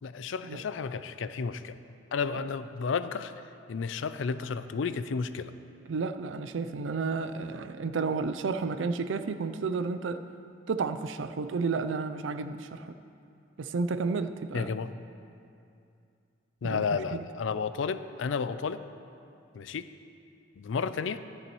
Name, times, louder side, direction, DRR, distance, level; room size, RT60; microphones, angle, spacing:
voice 1, 0.0-1.8 2.1-3.3 3.7-5.5 14.5-15.0 16.6-18.8 19.5-19.9 20.6-21.2, left 5 dB, 80° left, 12 dB, 0.4 m, -32 dB
voice 2, 5.9-10.2 10.7-12.9 13.6-14.7 16.6-16.8 17.1-17.3, right 4 dB, 75° right, 10 dB, 0.5 m, -31 dB
13.0 x 11.0 x 3.1 m, 2.5 s
head